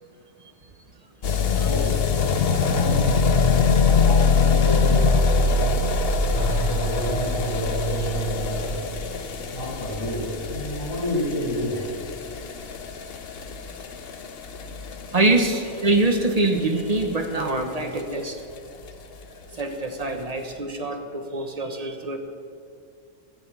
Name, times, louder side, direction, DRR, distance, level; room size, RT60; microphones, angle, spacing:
sound 1, 1.2-18.0 18.3-18.4 18.6-18.7 18.9-19.0 19.2-19.3 20.0-20.1, left 4 dB, 50° left, 0.9 m, -23 dB
voice 1, 1.4-5.9 6.3-8.8 9.5-11.9, equal, 20° left, -11 dB, 3.5 m, -31 dB
sound 2, 6.3-9.7, right 12 dB, 85° right, 0.4 m, -32 dB
voice 2, 15.1-18.4 19.5-22.2, right 2 dB, 30° right, 4 dB, 1.1 m, -24 dB
14.5 x 6.8 x 8.3 m, 2.3 s
omnidirectional pair, 1.4 m